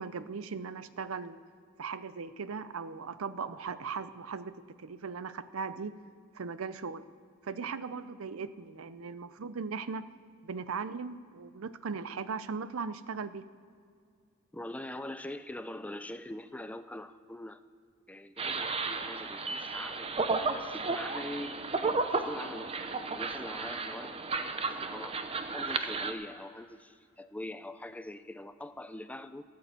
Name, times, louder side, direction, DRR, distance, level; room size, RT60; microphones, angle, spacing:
voice 1, 0.0-1.4 1.8-5.9 6.3-7.0 7.4-10.0 10.4-13.4, right 5 dB, 75° right, 14 dB, 0.5 m, -38 dB
voice 2, 14.5-17.6 18.1-25.1 25.5-29.4, left 1 dB, 5° left, 11 dB, 0.4 m, -43 dB
sound 1, 18.4-26.1, right 3 dB, 30° right, 0.7 m, -33 dB
13.5 x 8.5 x 7.7 m, 2.3 s
head